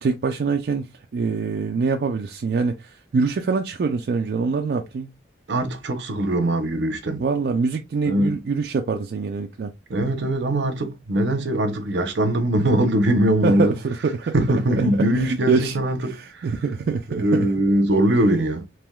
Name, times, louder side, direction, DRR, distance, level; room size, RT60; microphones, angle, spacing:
voice 1, 0.0-5.1 7.2-9.7 13.4-14.3 14.8-15.8 16.0-17.5, right 4 dB, 60° right, 0.3 m, -24 dB
voice 2, 5.5-7.2 8.1-8.4 9.9-13.7 14.3-16.5 17.1-18.6, right 1 dB, 80° right, 0.7 m, -21 dB
3.4 x 2.9 x 2.2 m
head